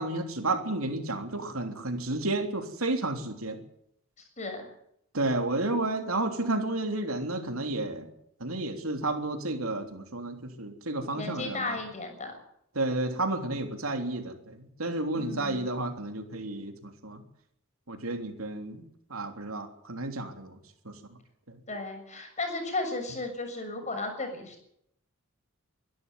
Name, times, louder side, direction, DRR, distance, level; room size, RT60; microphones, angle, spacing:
voice 1, 0.0-3.6 5.1-8.1 8.4-11.8 12.7-17.2 17.9-18.8 19.1-20.6 20.8-20.9, right 2 dB, 75° right, 5 dB, 3.4 m, -31 dB
voice 2, 4.4-4.7 11.1-12.3 15.1-15.7 21.7-24.6, left 2 dB, 35° left, 5 dB, 6.9 m, -35 dB
24.5 x 12.5 x 9.4 m, 0.73 s
head